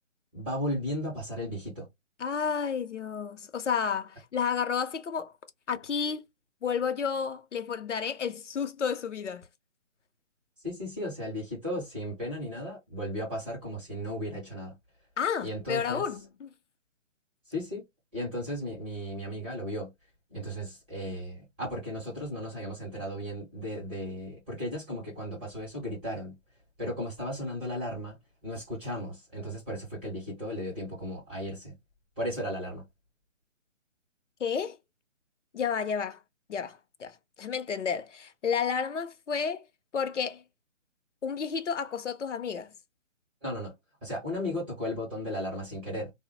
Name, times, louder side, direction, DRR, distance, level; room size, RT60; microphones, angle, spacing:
voice 1, 0.3-1.9 10.6-14.8 15.4-16.0 17.5-17.8 18.1-19.9 20.3-26.4 26.8-28.2 28.4-31.7 32.2-32.8 43.4-43.7 44.0-46.1, equal, 10° right, 0.7 m, -35 dB
voice 2, 2.2-5.3 5.7-6.2 6.6-9.5 15.2-16.5 34.4-34.8 35.5-36.2 36.5-39.7 39.9-40.4 41.2-42.7, left 6 dB, 65° left, 0.6 m, -31 dB
3.6 x 2.0 x 2.7 m
hypercardioid pair, 160°, 38 cm